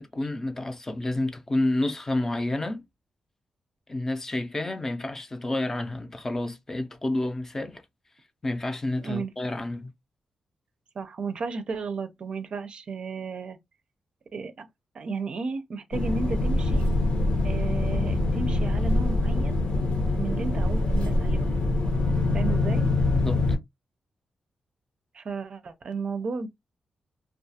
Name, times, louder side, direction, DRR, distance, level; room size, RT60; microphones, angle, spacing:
voice 1, 0.0-2.8 3.9-7.8 8.4-9.9 23.2-23.4, left 2 dB, 20° left, 0.5 m, -29 dB
voice 2, 9.0-9.3 11.0-13.6 14.3-14.7 14.9-16.9 17.4-19.6 20.2-21.6 22.3-22.8 25.1-26.5, right 4 dB, 55° right, 0.5 m, -33 dB
sound 1, 15.9-23.6, left 2 dB, 70° left, 0.9 m, -24 dB
2.3 x 2.3 x 2.7 m
wide cardioid pair, 115°, 2 cm